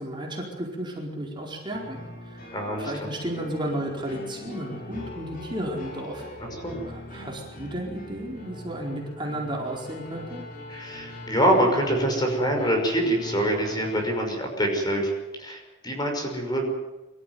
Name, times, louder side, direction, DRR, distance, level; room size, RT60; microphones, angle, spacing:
voice 1, 0.0-2.0 2.2-2.4 2.8-6.2 6.8-10.4, right 1 dB, 25° right, -1 dB, 4.6 m, -33 dB
sound 1, 1.7-14.1, left 1 dB, 50° left, 5.7 m, -41 dB
voice 2, 2.5-3.1 6.6-6.8 10.7-15.1 15.4-16.7, right 1 dB, 25° left, 2 dB, 5.7 m, -25 dB
24.5 x 14.0 x 9.4 m, 1.1 s
head